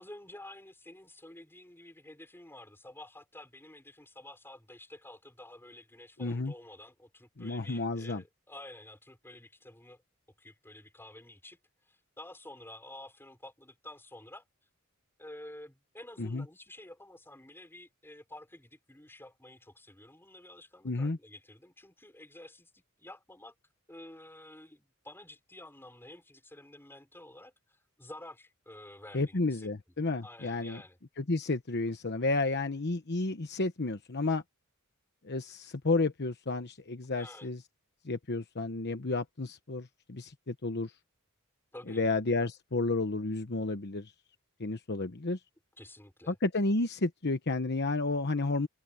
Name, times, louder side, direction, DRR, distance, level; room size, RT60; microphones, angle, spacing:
voice 1, 0.0-10.0 10.4-11.6 11.9-14.5 15.2-23.5 23.9-29.7 30.2-31.0 37.2-37.5 41.7-42.0 45.8-46.4, left 1 dB, 10° left, 5.4 m, -50 dB
voice 2, 6.2-6.5 7.4-8.2 16.2-16.4 20.8-21.2 29.1-30.8 31.2-34.4 35.2-37.6 38.0-40.9 41.9-44.1 44.6-45.4 46.3-48.7, left 3 dB, 50° left, 1.0 m, -31 dB
head